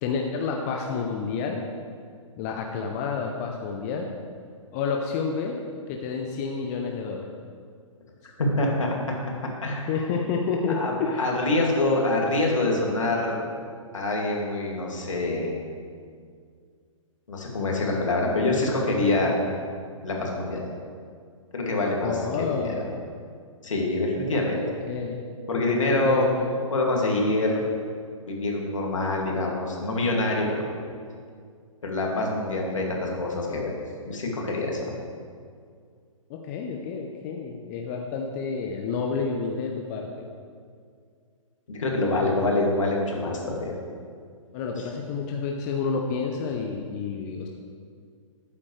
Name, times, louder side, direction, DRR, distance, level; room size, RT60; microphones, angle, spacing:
voice 1, 0.0-1.6 2.4-4.1 4.7-5.6 5.9-7.3 9.9-11.3 22.0-23.0 24.4-25.2 25.8-26.5 36.3-40.3 42.2-42.4 44.5-47.5, left 5 dB, 30° left, 2 dB, 0.7 m, -29 dB
voice 2, 8.4-9.0 9.6-9.9 10.7-13.4 13.9-15.5 17.3-19.3 20.0-20.7 21.5-22.7 23.6-24.6 25.5-26.3 26.7-27.7 28.3-30.7 31.8-33.7 34.0-34.8 41.7-43.8, left 2 dB, 65° left, -1 dB, 2.4 m, -25 dB
12.0 x 8.5 x 3.3 m, 2.1 s
figure-of-eight pair, 125°, 17 cm